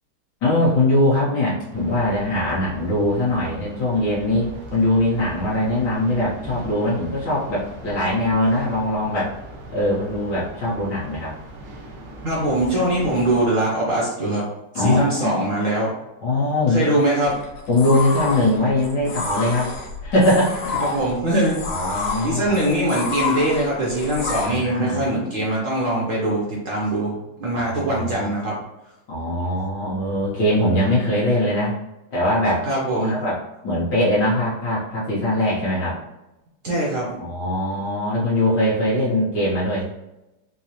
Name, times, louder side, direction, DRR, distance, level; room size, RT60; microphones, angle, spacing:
voice 1, 0.4-9.3 9.7-11.3 14.7-15.6 16.2-17.0 17.7-19.7 20.0-21.0 21.7-22.6 24.4-25.0 27.5-28.3 29.1-31.8 32.1-32.6 32.9-36.0 37.2-39.8, left 1 dB, 60° left, -8 dB, 1.4 m, -21 dB
sound 1, 1.7-13.5, right 1 dB, 90° right, 1.6 m, -39 dB
voice 2, 12.2-14.4 14.7-15.9 16.7-17.4 20.9-21.6 22.2-28.6 32.7-33.1 36.6-37.1, right 1 dB, 70° right, -4 dB, 0.7 m, -22 dB
sound 2, 17.2-24.5, left 4 dB, 85° left, 1.7 m, -29 dB
4.6 x 2.0 x 2.8 m, 0.95 s
omnidirectional pair, 2.3 m